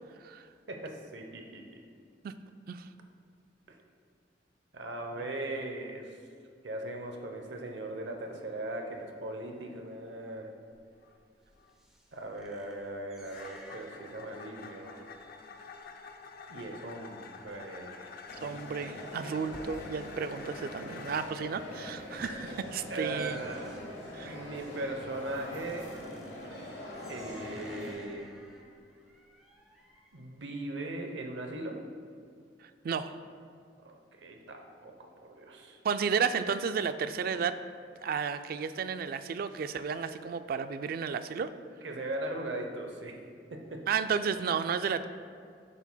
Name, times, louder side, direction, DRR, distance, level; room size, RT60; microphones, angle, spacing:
voice 1, 0.7-1.8 3.7-3.8 4.7-6.2 6.6-10.5 12.1-15.0 16.5-18.2 22.9-23.7 24.2-25.9 27.1-28.3 30.1-31.8 33.8-35.8 41.8-43.2 43.5-43.8, right 2 dB, 70° right, 3 dB, 0.8 m, -39 dB
sound 1, 7.6-7.8 8.1-8.5 8.9-9.1 9.5-9.7 10.1-10.4 11.0-11.2 11.6-11.7 13.2-21.3, left 4 dB, 55° left, 0.5 m, -48 dB
sound 2, 10.7-20.3 20.5-21.1 21.5-21.6 22.0-30.3, equal, 5° right, 0.8 m, -54 dB
sound 3, 18.3-27.9, left 1 dB, 75° left, 1.6 m, -44 dB
voice 2, 18.4-23.4 24.1-24.4 26.5-26.6 32.6-33.2 35.8-37.6 38.0-41.5 43.9-45.1, right 6 dB, 55° right, 11 dB, 0.3 m, -32 dB
9.8 x 7.1 x 2.2 m, 2.2 s
head